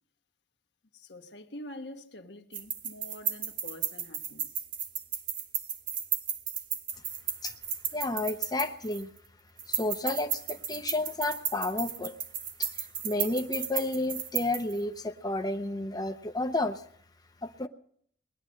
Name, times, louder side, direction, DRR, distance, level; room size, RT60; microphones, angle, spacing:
voice 1, 0.9-4.5, left 1 dB, 85° left, 1.4 m, -46 dB
sound 1, 2.5-9.2 9.6-14.8, right 8 dB, 50° right, 1.6 m, -34 dB
voice 2, 7.9-9.1 9.7-12.2 12.6-16.8 17.4-17.7, left 2 dB, 20° left, 0.7 m, -31 dB
20.0 x 11.0 x 6.5 m
head